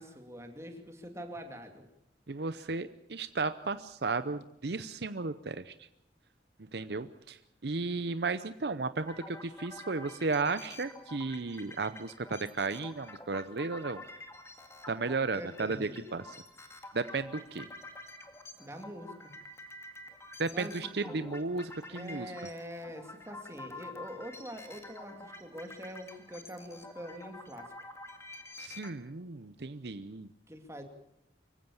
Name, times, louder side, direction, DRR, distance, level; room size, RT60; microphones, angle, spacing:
voice 1, 0.0-1.9 15.3-16.0 18.6-19.3 20.5-21.3 21.9-27.7 30.5-30.8, equal, 15° right, 5 dB, 2.6 m, -44 dB
voice 2, 2.3-5.9 6.7-14.0 14.9-16.2 16.9-17.7 20.4-22.3 28.6-30.3, right 3 dB, 60° right, 12 dB, 0.7 m, -34 dB
sound 1, 9.0-28.9, left 2 dB, 15° left, 2.1 m, -49 dB
24.5 x 16.0 x 7.1 m, 0.82 s
head